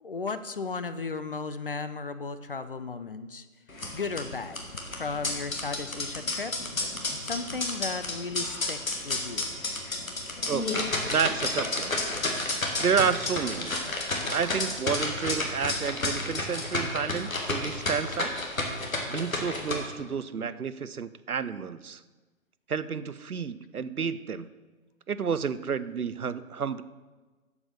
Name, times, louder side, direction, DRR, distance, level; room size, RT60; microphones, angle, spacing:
voice 1, 0.0-3.5 3.9-4.6 5.0-6.5 7.2-9.5, left 4 dB, 40° left, 11 dB, 0.5 m, -35 dB
sound 1, 3.7-19.7, left 2 dB, 70° left, 2.0 m, -31 dB
voice 2, 11.1-11.9 12.8-13.8 14.3-18.4 19.1-22.0 22.7-24.5 25.1-26.8, right 6 dB, 90° right, 15 dB, 0.6 m, -30 dB
8.0 x 7.3 x 6.5 m, 1.3 s
figure-of-eight pair, 140°, 43 cm